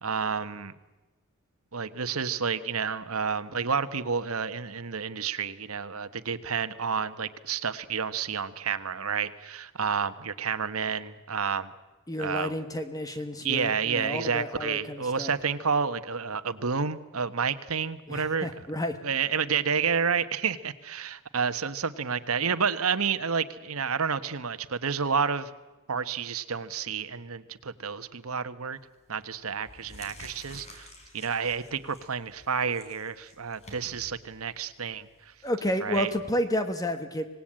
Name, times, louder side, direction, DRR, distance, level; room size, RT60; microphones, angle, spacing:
voice 1, 0.0-0.7 1.7-11.7 12.2-12.6 13.4-18.7 19.0-25.5 25.9-28.8 29.1-30.9 31.1-35.1 35.8-36.1, right 6 dB, 75° right, 11 dB, 1.2 m, -30 dB
voice 2, 12.1-15.3 18.1-18.9 35.4-37.3, left 1 dB, 15° left, 8 dB, 1.3 m, -31 dB
sound 1, 28.8-29.1 29.5-36.0, left 1 dB, 30° left, 4.1 m, -50 dB
25.5 x 19.0 x 8.8 m, 1.1 s
head